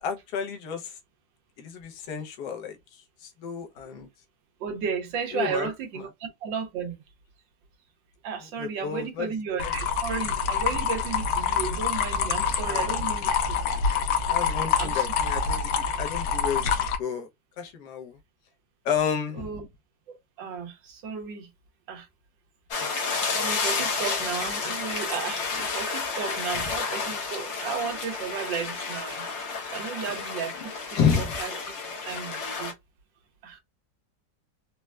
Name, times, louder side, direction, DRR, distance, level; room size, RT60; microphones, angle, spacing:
voice 1, 0.0-0.9 1.6-2.8 3.2-4.1 5.3-5.7 6.0-6.1 8.4-9.3 9.6-9.7 12.7-13.0 14.3-16.7 17.0-17.3 17.6-18.1 18.8-19.6 26.5-26.7 30.9-31.4, left 7 dB, 70° left, 1.3 m, -30 dB
voice 2, 4.6-7.0 8.2-13.6 14.8-15.0 19.3-19.7 20.4-21.5 21.9-22.1 23.3-29.3 29.7-31.5 32.0-32.7 33.4-33.6, right 6 dB, 85° right, 1.5 m, -34 dB
sound 1, 9.6-17.0, left 6 dB, 85° left, 1.3 m, -26 dB
sound 2, 22.7-32.7, left 4 dB, 55° left, 0.8 m, -31 dB
4.2 x 2.1 x 2.3 m
omnidirectional pair, 2.0 m